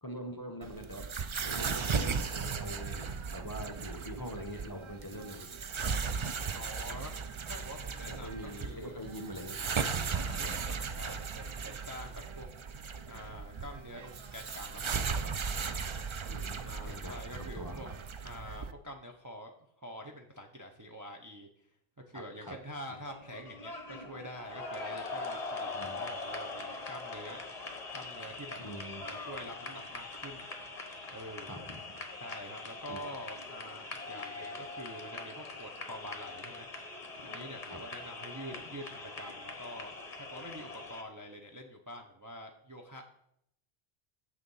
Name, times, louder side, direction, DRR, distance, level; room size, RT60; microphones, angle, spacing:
voice 1, 0.0-1.0 1.4-5.6 8.1-9.6 16.2-17.9 22.1-22.6 25.7-26.0 28.6-29.1 31.4-31.8 32.9-33.0 37.6-37.8, equal, 20° left, 4 dB, 0.9 m, -43 dB
sound 1, 0.6-18.7, right 5 dB, 55° right, 0.3 m, -37 dB
voice 2, 6.5-7.1 7.5-9.0 10.1-12.5 13.1-15.3 16.6-17.9 18.2-21.5 22.1-27.4 27.9-28.6 29.0-30.5 31.1-31.6 32.2-36.7 37.2-43.0, equal, 20° right, 2 dB, 0.7 m, -46 dB
sound 2, 23.1-41.0, left 3 dB, 35° left, 1.2 m, -42 dB
7.5 x 6.7 x 5.5 m, 0.73 s
omnidirectional pair, 1.1 m